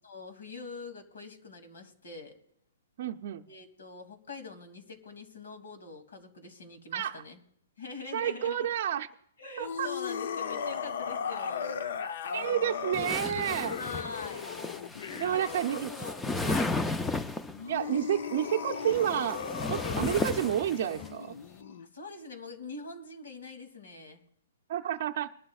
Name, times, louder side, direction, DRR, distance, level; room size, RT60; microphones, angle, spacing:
voice 1, 0.0-2.4 3.5-7.4 7.8-8.7 9.4-11.9 13.7-14.5 15.0-15.6 15.9-16.7 21.8-24.2, left 3 dB, 80° left, 6 dB, 2.6 m, -44 dB
voice 2, 3.0-3.4 6.9-7.2 8.1-9.1 9.6-9.9 12.3-13.8 15.2-15.9 16.3-16.4 17.7-19.4 19.7-21.3 24.7-25.3, right 11 dB, 45° right, 2 dB, 0.5 m, -30 dB
sound 1, 9.6-16.1 17.5-21.9, left 6 dB, 60° left, 0.7 m, -37 dB
sound 2, 12.9-17.6 18.6-21.1, left 3 dB, 5° left, 0.4 m, -34 dB
22.0 x 12.0 x 2.4 m, 0.69 s
hypercardioid pair, 165°, 0 cm